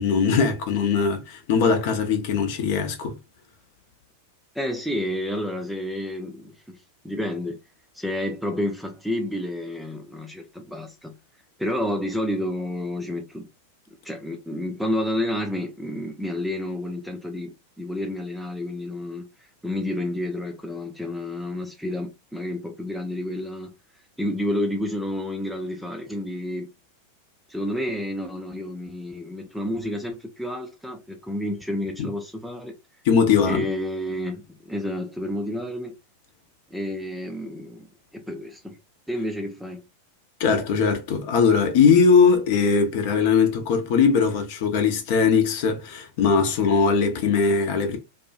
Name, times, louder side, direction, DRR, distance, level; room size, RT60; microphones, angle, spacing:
voice 1, 0.0-3.1 32.0-32.1 33.1-33.6 40.4-48.0, left 5 dB, 50° left, 0.7 m, -20 dB
voice 2, 4.6-6.8 7.0-7.6 7.9-11.1 11.6-13.5 14.0-19.3 19.6-23.7 24.2-26.7 27.5-32.7 33.4-35.9 36.7-37.9 38.1-38.8 39.1-39.8, left 1 dB, ahead, 0.4 m, -30 dB
2.6 x 2.3 x 2.5 m
figure-of-eight pair, 90°, 0 cm